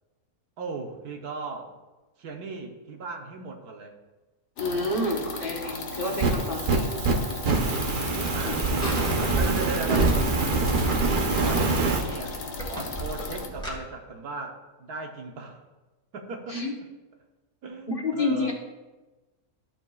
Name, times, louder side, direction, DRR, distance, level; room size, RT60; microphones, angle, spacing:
voice 1, 0.6-1.7 2.2-3.9 4.6-5.0 5.6-6.7 8.3-10.8 11.3-12.4 12.6-15.6 16.1-16.6 17.6-18.5, right 3 dB, 75° right, 3 dB, 1.5 m, -37 dB
sound 1, 4.6-13.5, left 3 dB, 60° left, 1.3 m, -37 dB
voice 2, 4.6-6.9 8.3-8.6 16.5-16.7 17.9-18.5, left 2 dB, 40° left, -2 dB, 1.3 m, -29 dB
Fire, 5.9-12.0, right 3 dB, 45° right, 0.8 m, -25 dB
sound 2, 7.3-13.8, right 2 dB, 5° left, 1.6 m, -34 dB
13.5 x 7.2 x 2.3 m, 1.1 s
omnidirectional pair, 1.7 m